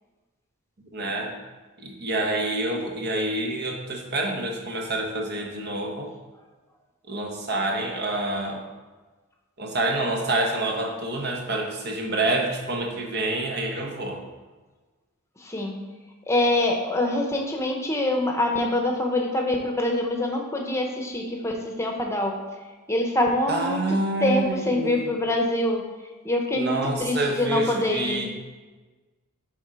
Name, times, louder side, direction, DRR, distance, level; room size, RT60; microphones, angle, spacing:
voice 1, 0.9-1.3 1.8-6.1 7.1-8.6 9.6-14.2 23.5-25.1 26.6-28.3, right 2 dB, 50° right, 2 dB, 1.0 m, -27 dB
voice 2, 15.4-15.8 16.3-22.3 22.9-25.8 26.2-28.3, left 1 dB, 15° left, 1 dB, 0.8 m, -25 dB
7.1 x 3.8 x 4.8 m, 1.3 s
head